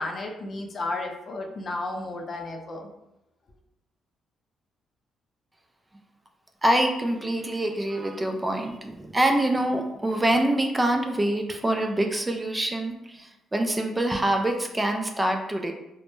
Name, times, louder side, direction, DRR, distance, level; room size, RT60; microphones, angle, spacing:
voice 1, 0.0-2.9, left 2 dB, 50° left, 2 dB, 0.4 m, -33 dB
voice 2, 6.6-15.7, right 1 dB, 20° right, 3 dB, 0.3 m, -25 dB
2.1 x 2.0 x 3.0 m, 0.89 s
cardioid pair, 75°, 0 cm